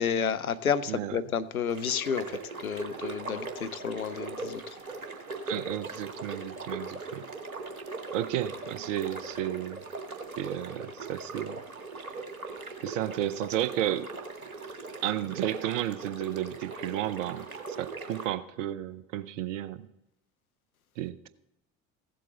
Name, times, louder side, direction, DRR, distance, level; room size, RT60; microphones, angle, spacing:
voice 1, 0.0-4.8, left 7 dB, 90° left, 13 dB, 0.5 m, -31 dB
voice 2, 0.9-1.2 5.5-7.2 8.1-9.8 10.4-11.6 12.8-14.1 15.0-17.5 17.8-19.9 21.0-21.3, right 12 dB, 65° right, 15 dB, 0.8 m, -32 dB
sound 1, 1.7-18.3, right 3 dB, 85° right, 1.2 m, -40 dB
15.5 x 7.7 x 3.9 m, 0.93 s
figure-of-eight pair, 60°, 41 cm